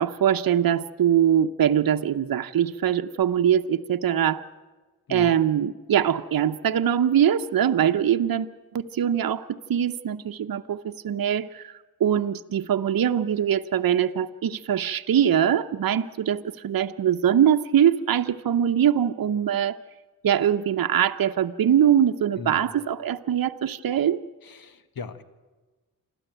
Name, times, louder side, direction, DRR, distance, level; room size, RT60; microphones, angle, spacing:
voice 1, 0.0-4.4 5.1-11.7 12.0-19.8 20.2-24.2, right 9 dB, 70° right, 7 dB, 0.8 m, -22 dB
voice 2, 22.4-22.7 24.4-25.2, left 5 dB, 75° left, 11 dB, 1.5 m, -38 dB
28.0 x 13.0 x 9.0 m, 1.3 s
cardioid pair, 80°, 36 cm